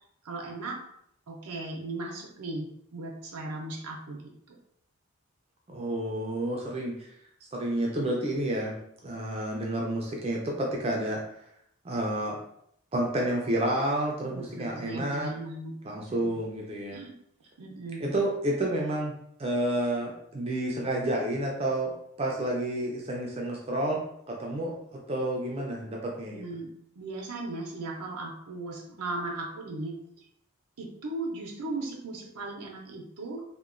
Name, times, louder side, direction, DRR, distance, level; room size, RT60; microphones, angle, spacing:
voice 1, 0.2-0.8 1.3-4.6 14.2-16.4 16.9-17.2 17.6-18.0 26.3-30.0 30.8-33.4, right 2 dB, 90° right, 0 dB, 0.5 m, -37 dB
voice 2, 5.7-7.1 7.5-8.8 9.0-11.2 11.8-12.4 12.9-15.3 15.8-17.0 18.0-19.1 19.4-24.0 24.3-24.8 25.1-26.4, right 1 dB, 25° right, -1 dB, 0.3 m, -30 dB
2.9 x 2.1 x 2.4 m, 0.72 s
head